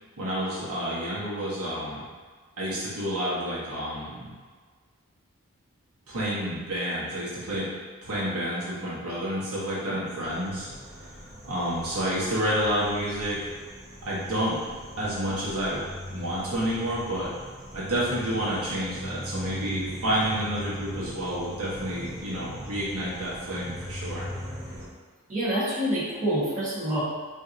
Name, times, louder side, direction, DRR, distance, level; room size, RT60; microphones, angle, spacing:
voice 1, 0.2-2.0 2.6-4.3 6.1-7.7 8.0-10.7 11.0-11.2 11.4-13.4 14.0-14.6 15.0-17.3 17.7-24.3, equal, 85° right, -8 dB, 1.0 m, -29 dB
sound 1, 10.2-24.9, equal, 15° right, 0.5 m, -40 dB
voice 2, 25.3-27.0, right 1 dB, 35° right, -11 dB, 1.1 m, -27 dB
4.2 x 2.6 x 2.5 m, 1.5 s
head